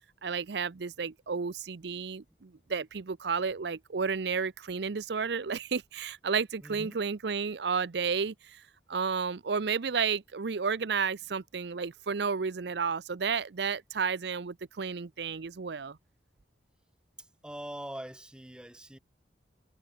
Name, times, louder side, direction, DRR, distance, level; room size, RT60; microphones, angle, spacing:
voice 1, 0.2-8.6 8.9-16.0, right 5 dB, 65° right, 0.6 m, -32 dB
voice 2, 6.6-7.0 17.4-19.0, right 1 dB, 5° right, 0.6 m, -42 dB
head